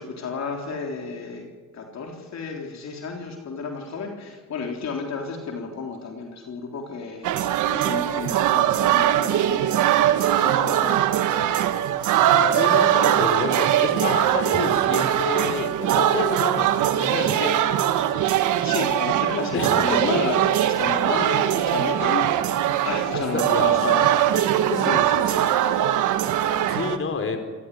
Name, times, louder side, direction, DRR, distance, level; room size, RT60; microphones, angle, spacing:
voice 1, 0.0-9.8 10.1-11.1 11.4-11.8 18.6-24.1 24.8-25.8, left 5 dB, 60° left, 2 dB, 3.8 m, -33 dB
sound 1, 7.2-27.0, right 11 dB, 90° right, 1.5 m, -21 dB
sound 2, 10.1-15.4, right 2 dB, 35° right, 5.2 m, -45 dB
voice 2, 12.2-17.5 19.5-20.2 23.1-25.0 25.3-25.4 26.7-27.4, left 4 dB, 45° left, 6 dB, 4.1 m, -29 dB
27.0 x 18.0 x 9.8 m, 1.4 s
cardioid pair, 90°, 30 cm